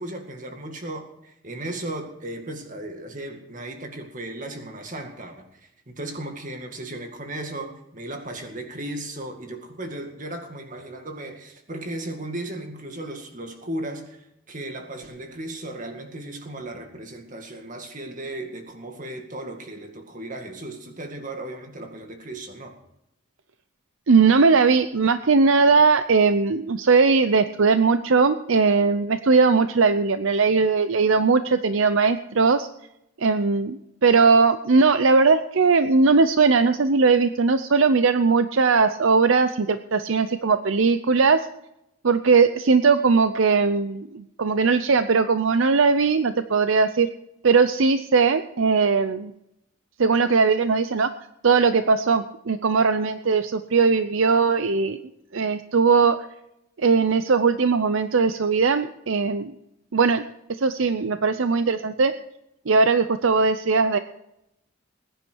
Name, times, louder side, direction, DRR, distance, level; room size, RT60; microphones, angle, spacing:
voice 1, 0.0-22.8, right 1 dB, 35° right, 4 dB, 2.1 m, -36 dB
voice 2, 24.1-32.7 33.2-41.5 42.0-47.1 47.4-49.3 50.0-51.1 51.4-55.0 55.3-56.2 56.8-59.5 59.9-60.2 60.6-62.1 62.7-64.0, right 4 dB, 65° right, 11 dB, 0.6 m, -19 dB
20.5 x 10.0 x 4.6 m, 0.83 s
head